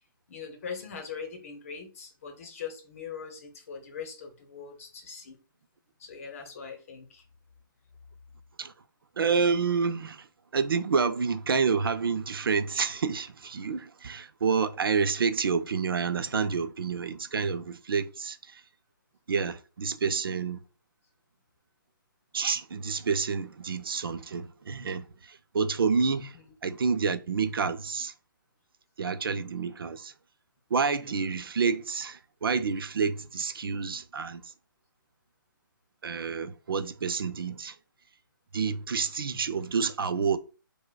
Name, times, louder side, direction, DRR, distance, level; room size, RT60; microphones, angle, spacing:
voice 1, 0.3-5.4 6.0-7.2 26.3-26.5, left 6 dB, 40° left, 0.8 m, -41 dB
voice 2, 9.2-10.3 10.5-18.6 19.3-20.6 22.3-26.4 26.6-28.1 29.0-30.1 30.7-34.5 36.0-37.8 38.5-40.4, right 5 dB, 80° right, 0.5 m, -28 dB
4.7 x 2.2 x 2.3 m
hypercardioid pair, 165°, 12 cm